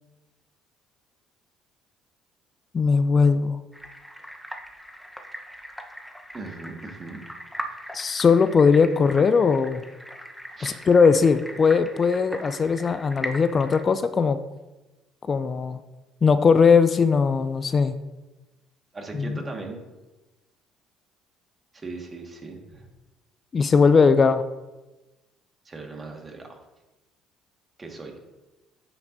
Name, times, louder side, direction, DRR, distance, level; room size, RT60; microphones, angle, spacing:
voice 1, 2.7-3.6 7.9-9.8 10.6-14.4 15.3-15.8 16.2-17.9 19.2-19.4 23.5-24.4, left 5 dB, 40° left, 12 dB, 0.4 m, -19 dB
sound 1, 3.7-13.8, equal, ahead, 0.9 m, -40 dB
voice 2, 6.3-7.2 10.6-10.8 18.9-19.8 21.7-22.9 25.6-26.6 27.8-28.1, right 3 dB, 30° right, 2 dB, 1.7 m, -38 dB
9.2 x 5.9 x 2.7 m, 1.1 s
hypercardioid pair, 65°, 0 cm